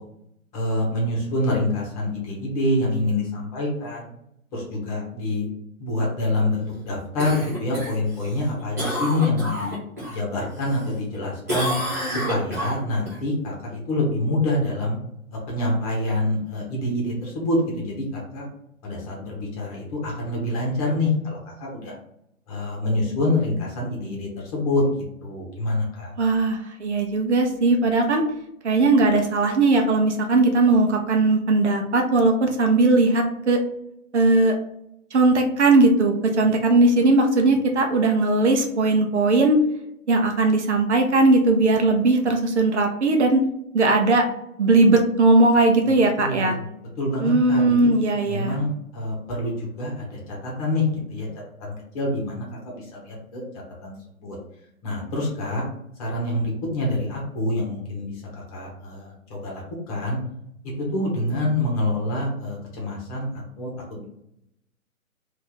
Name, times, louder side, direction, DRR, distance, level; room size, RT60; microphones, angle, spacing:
voice 1, 0.5-4.1 4.5-5.5 5.8-9.7 10.1-11.7 12.1-15.0 15.5-18.5 18.8-21.9 22.5-26.1 46.2-47.9 48.3-51.3 51.6-53.4 53.8-53.9 54.2-54.4 54.8-55.6 56.0-60.2 60.8-64.0, left 1 dB, 25° left, -2 dB, 1.1 m, -26 dB
Cough, 7.2-10.2 10.6-11.2 11.5-13.2 17.6-17.7, equal, 15° right, 0.5 m, -29 dB
voice 2, 26.2-28.2 28.6-33.6 34.1-34.5 35.1-39.6 40.1-43.4 43.7-44.2 44.6-46.6 47.2-48.6, right 2 dB, 55° right, 3 dB, 0.7 m, -19 dB
2.8 x 2.6 x 3.9 m, 0.79 s
figure-of-eight pair, 130°, 42 cm